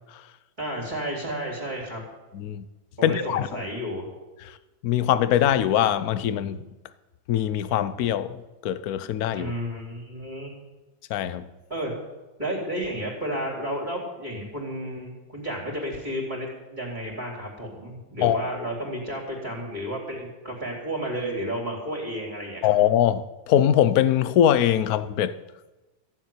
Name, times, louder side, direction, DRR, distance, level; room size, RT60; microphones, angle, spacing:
voice 1, 0.6-2.0 3.0-4.1 9.3-10.5 11.7-11.9 12.4-22.7, equal, 20° right, -1 dB, 3.6 m, -32 dB
voice 2, 2.3-2.7 3.0-3.6 4.8-6.7 7.3-9.5 11.1-11.5 18.2-18.4 22.6-25.3, left 10 dB, 60° left, 14 dB, 1.0 m, -22 dB
15.0 x 7.3 x 9.5 m, 1.1 s
omnidirectional pair, 2.1 m